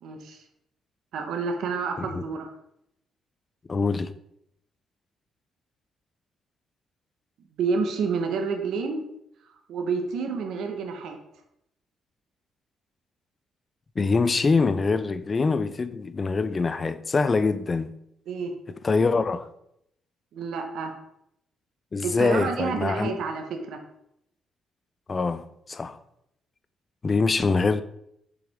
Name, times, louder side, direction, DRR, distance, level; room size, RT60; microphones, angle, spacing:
voice 1, 0.0-0.4 1.1-2.5 7.6-9.0 9.5-11.2 18.3-18.5 20.3-21.0 22.0-23.8, right 5 dB, 75° right, 1.2 m, -29 dB
voice 2, 3.7-4.1 14.0-17.9 18.8-19.5 21.9-23.2 25.1-26.0 27.0-27.8, left 4 dB, 35° left, 0.5 m, -24 dB
6.9 x 5.1 x 3.6 m
cardioid pair, 90°, 0 cm